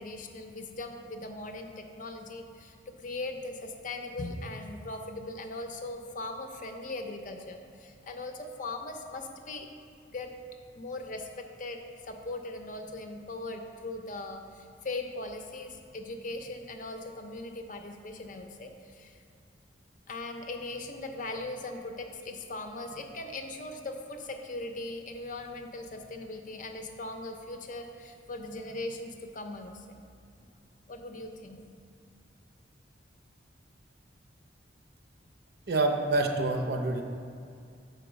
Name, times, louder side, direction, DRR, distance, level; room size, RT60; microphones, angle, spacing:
voice 1, 0.0-9.7 10.1-10.3 10.7-19.2 20.1-30.0 30.9-31.6, left 2 dB, 45° left, 5 dB, 0.6 m, -39 dB
voice 2, 35.7-37.0, right 2 dB, 60° right, 3 dB, 0.6 m, -27 dB
6.9 x 4.5 x 5.0 m, 2.3 s
head